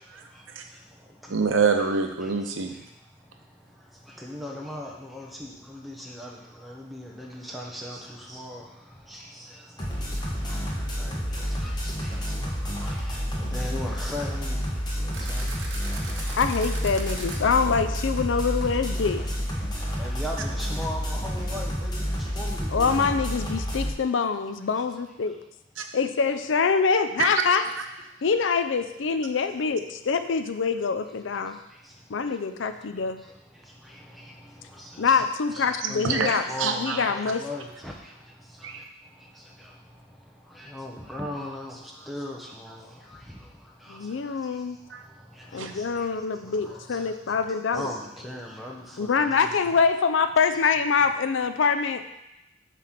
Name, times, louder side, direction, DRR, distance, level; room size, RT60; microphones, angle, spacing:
voice 1, 1.3-2.7 25.8-25.9 27.2-27.4 36.0-37.1 38.6-38.8 44.9-45.0 45.6-45.7, right 5 dB, 90° right, 5 dB, 0.8 m, -25 dB
voice 2, 4.2-6.4 6.6-8.6 9.1-9.2 11.0-11.2 11.6-12.1 12.4-12.5 12.8-14.6 15.2-15.4 20.0-22.1 22.3-22.9 35.0-35.2 35.5-36.2 36.5-37.9 40.6-41.8 42.1-42.8 46.7-46.8 47.7-49.6, left 1 dB, ahead, -2 dB, 0.9 m, -37 dB
sound 1, 9.8-23.9, equal, 20° left, 1.2 m, -29 dB
sound 2, 15.1-17.4, right 4 dB, 75° right, 1.2 m, -39 dB
voice 3, 16.4-19.2 22.7-25.4 25.9-27.6 28.2-31.6 32.1-33.2 35.0-37.4 43.9-44.8 45.5-47.9 49.0-52.0, left 5 dB, 75° left, 9 dB, 0.5 m, -25 dB
7.6 x 3.3 x 5.8 m, 0.90 s
head